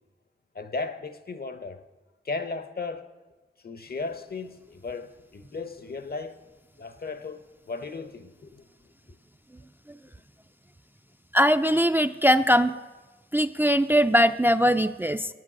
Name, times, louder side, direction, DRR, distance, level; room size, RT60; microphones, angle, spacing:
voice 1, 0.5-1.8 2.2-3.1 3.6-6.4 6.8-7.4 7.7-8.6, left 3 dB, 55° left, 0.8 m, -35 dB
voice 2, 11.3-12.7 13.3-15.3, equal, 10° right, 0.3 m, -21 dB
7.9 x 7.5 x 6.1 m
cardioid pair, 40°, 20 cm